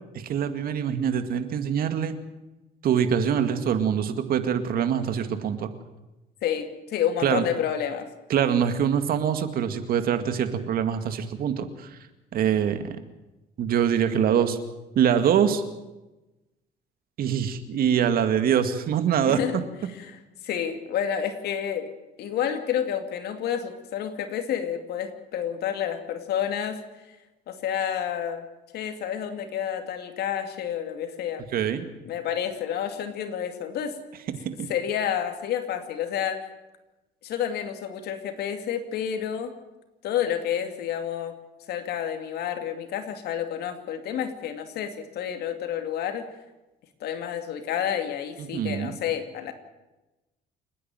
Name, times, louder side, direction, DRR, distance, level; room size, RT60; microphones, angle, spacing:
voice 1, 0.1-2.1 2.8-5.7 7.2-7.4 8.3-12.0 12.3-13.0 13.6-14.6 15.0-15.6 17.2-19.4 31.5-31.9 34.6-34.7 48.4-48.9, right 8 dB, 60° right, 9 dB, 2.1 m, -24 dB
voice 2, 6.4-8.1 19.3-19.6 20.0-21.9 22.2-26.8 27.5-28.5 28.7-31.4 32.1-34.0 34.7-36.5 37.2-39.6 40.0-41.4 41.7-46.3 47.0-49.5, left 9 dB, 75° left, 7 dB, 2.6 m, -29 dB
29.0 x 10.0 x 9.1 m, 1.0 s
cardioid pair, 110°, 17 cm